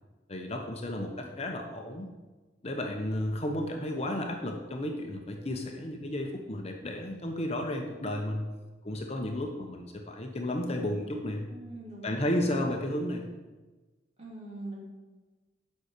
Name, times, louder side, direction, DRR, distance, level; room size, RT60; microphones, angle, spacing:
voice 1, 0.3-2.1 2.6-8.5 8.8-11.5 12.0-13.3, left 1 dB, 35° left, 3 dB, 0.9 m, -33 dB
voice 2, 11.5-12.5 14.2-14.8, right 1 dB, 35° right, -5 dB, 3.3 m, -43 dB
9.5 x 5.7 x 6.6 m, 1.2 s
head